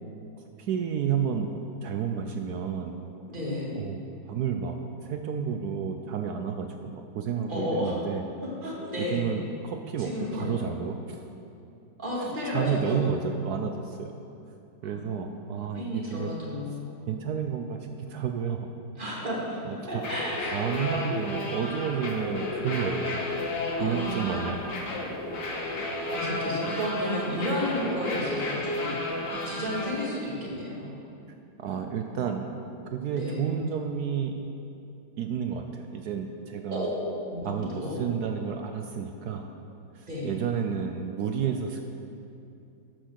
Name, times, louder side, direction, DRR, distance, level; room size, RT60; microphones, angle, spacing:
voice 1, 0.4-1.5 1.8-3.0 3.7-4.8 5.0-8.2 9.0-11.2 12.2-14.1 14.8-16.3 17.1-18.7 19.6-20.0 20.5-23.4 23.8-24.7 31.6-32.5 32.9-34.3 35.2-36.9 37.4-39.5 39.9-41.9, right 7 dB, 70° right, 5 dB, 1.0 m, -31 dB
voice 2, 3.3-3.7 7.5-7.9 8.6-9.3 10.0-10.6 12.0-13.1 14.8-15.4 15.7-16.9 19.0-19.6 19.9-20.4 23.8-24.5 26.1-28.9 29.4-31.0 33.1-33.4 36.7-38.0 40.1-40.4, left 1 dB, 25° right, -6 dB, 2.5 m, -32 dB
sound 1, 19.9-29.9, left 2 dB, 65° left, 2.0 m, -32 dB
13.0 x 6.1 x 6.4 m, 2.7 s
omnidirectional pair, 2.0 m